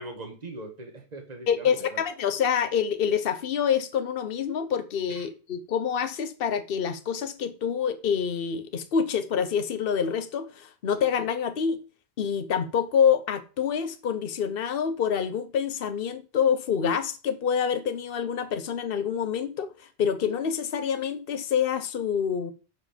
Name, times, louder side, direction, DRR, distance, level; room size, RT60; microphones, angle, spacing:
voice 1, 0.0-2.0 5.1-5.3, right 2 dB, 40° right, 1.7 m, -41 dB
voice 2, 1.5-11.8 12.2-19.7 20.0-22.5, left 7 dB, 60° left, 1.0 m, -27 dB
9.3 x 5.2 x 5.1 m
omnidirectional pair, 1.1 m